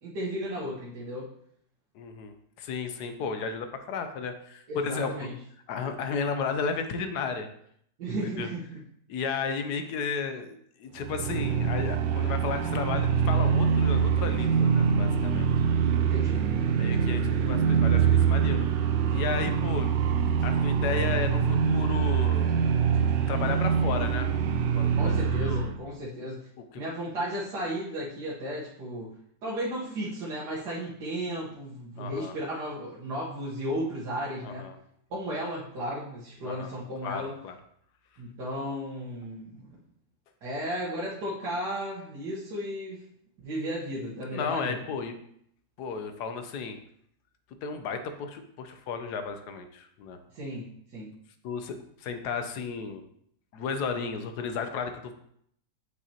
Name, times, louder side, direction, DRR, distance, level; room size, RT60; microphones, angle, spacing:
voice 1, 0.0-1.3 4.7-5.3 8.0-8.6 16.0-16.5 24.9-26.5 26.8-29.2 29.4-34.7 35.1-37.3 38.2-39.7 40.4-43.0 43.4-44.8 50.3-51.1, equal, 65° right, -7 dB, 1.8 m, -34 dB
voice 2, 1.9-5.1 5.7-7.5 8.1-8.5 9.1-15.5 16.7-18.7 19.1-19.9 20.4-22.5 23.3-24.3 24.8-25.7 26.7-26.8 32.0-32.3 34.4-34.8 36.4-36.8 37.0-37.6 44.3-45.2 45.8-46.8 47.6-50.2 51.4-53.0 53.5-55.1, left 5 dB, 65° left, 8 dB, 1.2 m, -33 dB
sound 1, 11.0-25.8, right 7 dB, 80° right, 1.3 m, -24 dB
7.6 x 5.8 x 2.9 m, 0.69 s
omnidirectional pair, 2.0 m